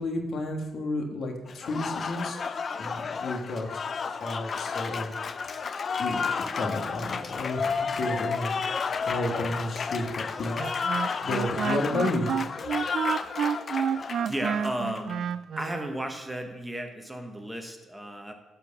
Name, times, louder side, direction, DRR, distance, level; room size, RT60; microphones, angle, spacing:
voice 1, 0.0-3.7 4.2-5.1 6.0-6.2 6.5-10.6 11.2-12.3, left 2 dB, 60° left, 3 dB, 1.5 m, -32 dB
Applause, 1.5-15.1, left 5 dB, 45° left, 0.5 m, -32 dB
Wind instrument woodwind instrument, 10.6-15.9, right 8 dB, 65° right, 0.3 m, -30 dB
voice 2, 13.9-15.3 15.6-18.3, right 1 dB, 5° right, 4 dB, 1.1 m, -34 dB
11.0 x 4.6 x 6.9 m, 1.1 s
cardioid pair, 90°, 0 cm